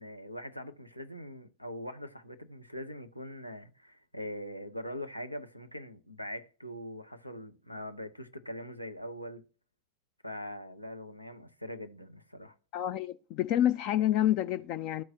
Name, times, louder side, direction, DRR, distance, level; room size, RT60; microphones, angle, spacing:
voice 1, 0.0-9.4 10.2-12.5, left 1 dB, 90° left, 0.7 m, -42 dB
voice 2, 12.7-15.0, left 12 dB, 40° left, 0.3 m, -28 dB
13.0 x 4.6 x 2.8 m
figure-of-eight pair, 90°, 0 cm